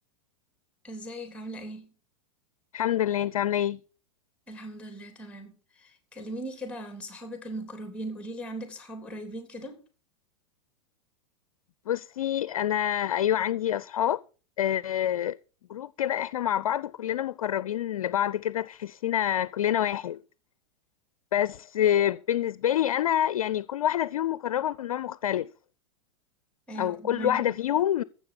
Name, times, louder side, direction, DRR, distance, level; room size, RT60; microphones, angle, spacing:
voice 1, 0.8-1.9 4.5-9.8 26.7-27.6, right 1 dB, 5° left, 3.4 m, -39 dB
voice 2, 2.7-3.8 11.9-14.2 14.6-15.4 15.7-20.2 21.3-25.5 26.8-28.0, left 11 dB, 85° left, 0.5 m, -27 dB
15.0 x 7.3 x 5.9 m
hypercardioid pair, 110°, 18 cm